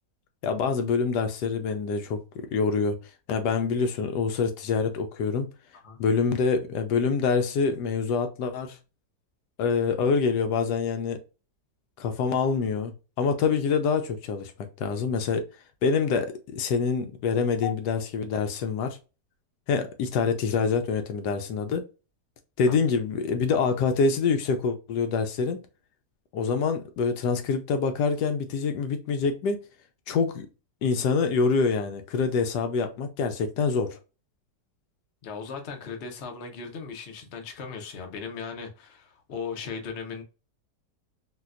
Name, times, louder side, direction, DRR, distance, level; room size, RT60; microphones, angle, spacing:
voice 1, 0.4-3.0 3.3-5.5 6.0-8.8 9.6-11.2 12.0-12.9 13.2-14.5 14.8-15.4 15.8-19.0 19.7-21.8 22.6-25.6 26.3-29.6 30.1-30.5 30.8-34.0, left 5 dB, 75° left, 1.2 m, -26 dB
voice 2, 35.2-40.2, left 6 dB, 55° left, 0.8 m, -37 dB
4.1 x 2.2 x 2.4 m
omnidirectional pair, 1.8 m